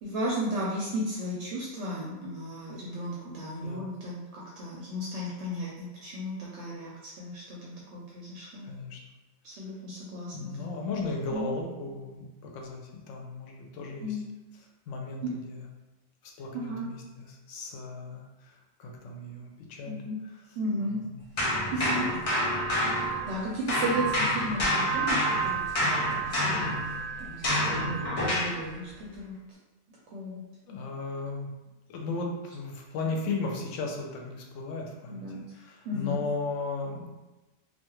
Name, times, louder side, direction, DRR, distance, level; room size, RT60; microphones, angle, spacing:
voice 1, 0.0-8.7 9.4-10.7 11.3-11.5 14.0-14.2 16.5-16.9 19.8-20.2 20.6-21.0 21.7-22.1 22.8-26.8 27.2-29.3 30.1-30.4 35.1-35.5 35.9-36.2, equal, 70° right, -5 dB, 0.8 m, -35 dB
voice 2, 3.6-3.9 8.6-9.0 10.3-14.2 14.9-15.7 16.2-21.2 21.8-22.1 30.7-31.5 31.9-37.1, left 3 dB, 90° left, 1 dB, 0.9 m, -36 dB
sound 1, 21.4-23.4 23.7-28.6, equal, 50° left, 0.4 m, -28 dB
2.4 x 2.3 x 2.9 m, 1.1 s
omnidirectional pair, 1.2 m